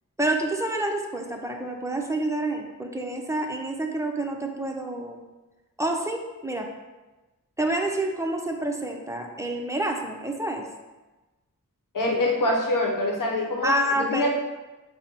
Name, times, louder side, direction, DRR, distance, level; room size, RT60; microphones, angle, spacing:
voice 1, 0.2-5.2 5.8-6.7 7.6-10.7 13.6-14.3, right 1 dB, 10° right, 2 dB, 0.5 m, -28 dB
voice 2, 11.9-14.3, left 1 dB, 65° left, 0 dB, 0.9 m, -25 dB
5.3 x 2.0 x 4.3 m, 1.1 s
wide cardioid pair, 65°, 34 cm